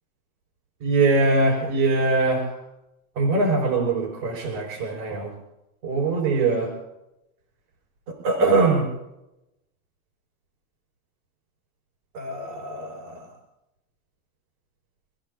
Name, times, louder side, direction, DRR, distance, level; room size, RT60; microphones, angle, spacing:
voice 1, 0.8-2.5 3.1-5.3 5.8-6.7 8.2-8.9 12.1-13.2, right 3 dB, 65° right, -3 dB, 6.6 m, -22 dB
29.0 x 16.0 x 2.9 m, 0.91 s
supercardioid pair, 145°, 41 cm